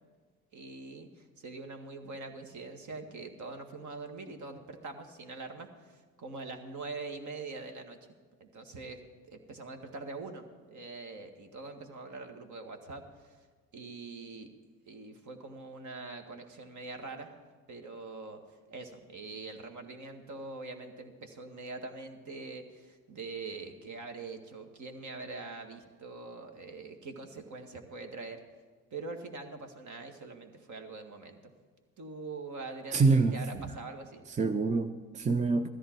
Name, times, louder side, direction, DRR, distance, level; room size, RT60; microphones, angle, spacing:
voice 1, 0.5-8.0 8.4-9.0 9.3-13.5 13.7-14.5 14.9-17.3 17.7-18.4 18.7-28.4 28.9-31.5 32.0-34.2, right 3 dB, 45° right, 5 dB, 1.9 m, -43 dB
voice 2, 32.9-33.8 34.3-35.7, right 4 dB, 15° right, 8 dB, 0.6 m, -27 dB
16.0 x 13.5 x 4.6 m, 1.5 s
hypercardioid pair, 55°, 42 cm